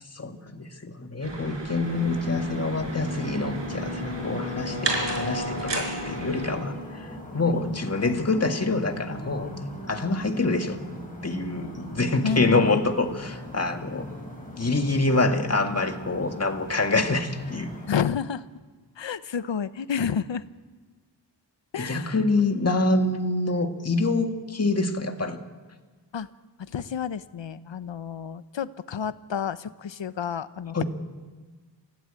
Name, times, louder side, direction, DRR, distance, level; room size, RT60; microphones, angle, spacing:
voice 1, 0.2-7.1 7.3-9.5 9.9-10.8 11.2-14.1 14.6-17.7 21.8-25.4 30.7-30.8, left 2 dB, 35° left, 5 dB, 2.0 m, -26 dB
sound 1, 1.2-6.6, right 3 dB, 80° right, 5.3 m, -34 dB
sound 2, 1.8-17.9, left 1 dB, 20° left, 6.6 m, -38 dB
voice 2, 12.2-12.8 17.9-18.4 19.0-20.4 21.7-22.1 26.1-26.3 26.7-30.8, left 7 dB, 90° left, 14 dB, 0.9 m, -30 dB
28.0 x 16.0 x 8.9 m, 1.4 s
wide cardioid pair, 100°, 43 cm